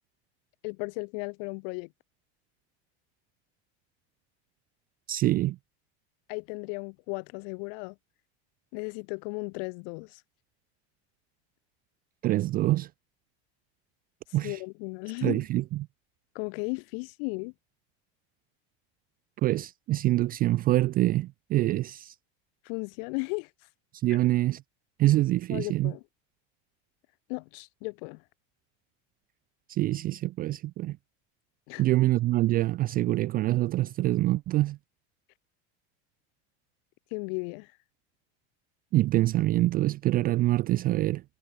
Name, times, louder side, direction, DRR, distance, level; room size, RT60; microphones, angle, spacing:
voice 1, 0.6-1.9 6.3-7.9 8.7-10.2 14.4-15.4 16.3-17.5 22.6-23.5 25.5-26.0 27.3-28.2 31.7-31.8 37.1-37.7, left 40 dB or more, 60° left, 1.3 m, -35 dB
voice 2, 5.1-5.6 12.2-12.9 14.3-14.6 15.2-15.9 19.4-22.2 23.9-24.6 25.0-25.9 29.7-31.0 31.8-34.8 38.9-41.2, right 16 dB, 30° right, 0.4 m, -25 dB
supercardioid pair, 155°, 33 cm